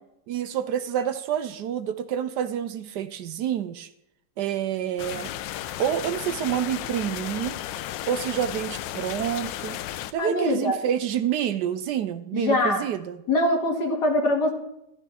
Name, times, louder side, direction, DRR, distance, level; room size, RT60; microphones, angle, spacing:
voice 1, 0.3-3.9 4.4-5.3 5.8-7.6 8.1-9.8 10.1-13.2, right 9 dB, 70° right, 11 dB, 1.2 m, -28 dB
sound 1, 5.0-10.1, left 13 dB, 80° left, 1.3 m, -34 dB
voice 2, 10.2-10.8 12.3-12.8 13.3-14.5, left 1 dB, 60° left, 1 dB, 2.7 m, -23 dB
13.5 x 12.5 x 3.4 m, 0.81 s
omnidirectional pair, 2.0 m